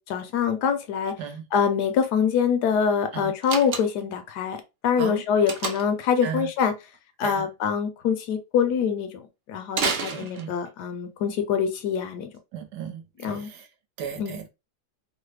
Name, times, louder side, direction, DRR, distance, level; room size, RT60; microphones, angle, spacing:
voice 1, 0.0-1.1 1.5-6.7 7.2-12.3 13.2-13.5 14.2-14.4, left 7 dB, 75° left, 1.0 m, -25 dB
Slam, 3.4-4.2 5.5-6.0 9.7-10.8, right 5 dB, 90° right, 0.5 m, -29 dB
voice 2, 10.1-10.5 12.5-13.7 14.0-14.5, right 7 dB, 75° right, 1.2 m, -35 dB
3.1 x 2.0 x 3.2 m
omnidirectional pair, 1.9 m